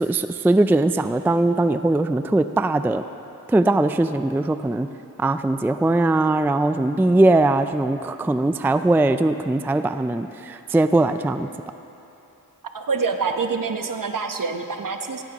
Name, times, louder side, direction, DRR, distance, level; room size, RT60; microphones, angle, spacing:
voice 1, 0.0-3.0 3.5-4.9 5.2-11.5, right 2 dB, 5° right, 10 dB, 0.3 m, -20 dB
voice 2, 12.7-15.2, right 4 dB, 60° right, 6 dB, 1.0 m, -26 dB
16.5 x 16.5 x 3.0 m, 2.9 s
cardioid pair, 55°, 37 cm